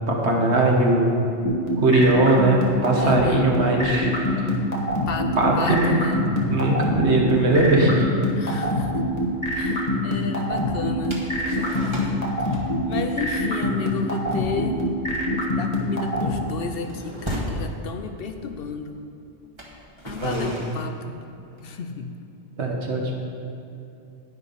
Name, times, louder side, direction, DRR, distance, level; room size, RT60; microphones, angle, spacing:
voice 1, 0.1-1.1 1.8-4.1 5.4-5.9 6.2-8.1 20.2-20.5 22.6-23.1, right 2 dB, 75° right, -1 dB, 1.7 m, -20 dB
sound 1, 1.4-16.3, left 1 dB, 35° left, 1.4 m, -24 dB
voice 2, 3.0-3.6 5.1-6.3 8.4-9.0 9.5-14.8 15.5-19.0 20.0-21.2 21.6-22.1, left 5 dB, 60° left, 6 dB, 0.8 m, -33 dB
sound 2, 11.1-12.2 12.5-12.8 13.1-13.4 13.8-14.0 14.3-14.6 15.0-17.6 18.5-18.6 19.4-21.8, right 1 dB, 25° right, 1.4 m, -36 dB
10.5 x 9.6 x 4.1 m, 2.8 s
omnidirectional pair, 1.2 m